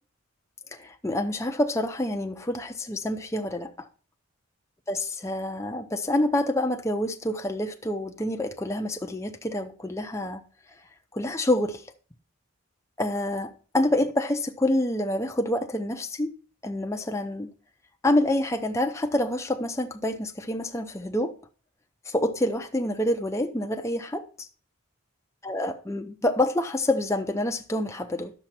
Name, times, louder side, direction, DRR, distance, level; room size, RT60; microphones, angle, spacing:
voice 1, 0.7-3.9 4.9-10.4 11.1-11.8 13.0-16.3 16.6-17.5 18.0-21.3 22.1-24.3 25.4-28.3, left 1 dB, 15° left, 0.6 m, -27 dB
10.5 x 6.9 x 4.3 m
head